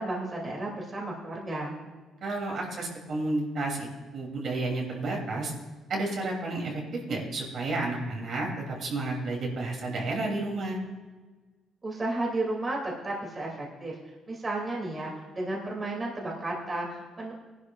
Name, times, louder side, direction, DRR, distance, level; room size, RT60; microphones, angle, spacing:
voice 1, 0.0-1.8 11.8-14.0 14.3-17.3, right 2 dB, 30° right, -2 dB, 2.6 m, -33 dB
voice 2, 2.2-3.9 4.1-5.5 5.9-10.8, right 2 dB, 60° right, -1 dB, 2.9 m, -31 dB
18.0 x 11.5 x 2.4 m, 1.3 s
cardioid pair, 95°, 0 cm